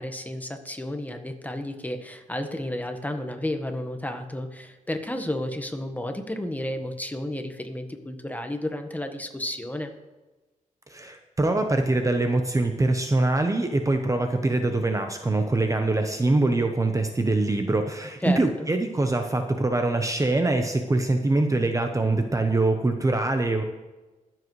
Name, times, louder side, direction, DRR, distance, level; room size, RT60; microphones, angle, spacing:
voice 1, 0.0-9.9 18.2-18.7, left 1 dB, 10° left, 5 dB, 1.3 m, -32 dB
voice 2, 10.9-23.6, right 2 dB, 25° right, 5 dB, 0.9 m, -24 dB
22.0 x 7.7 x 3.2 m, 1.1 s
cardioid pair, 90°, 14 cm